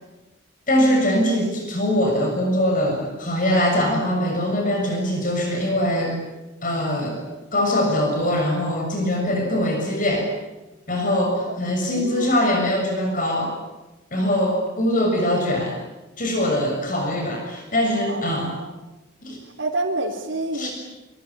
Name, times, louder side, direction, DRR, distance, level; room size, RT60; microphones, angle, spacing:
voice 1, 0.7-6.2 6.6-7.2 7.5-10.3 10.9-13.5 14.1-15.8 16.2-18.5 19.2-19.4 20.5-20.7, left 1 dB, 45° left, 2 dB, 6.9 m, -22 dB
voice 2, 12.0-12.4 18.1-18.7 19.6-20.7, right 2 dB, 85° right, -3 dB, 3.6 m, -28 dB
26.0 x 25.0 x 8.7 m, 1.1 s
head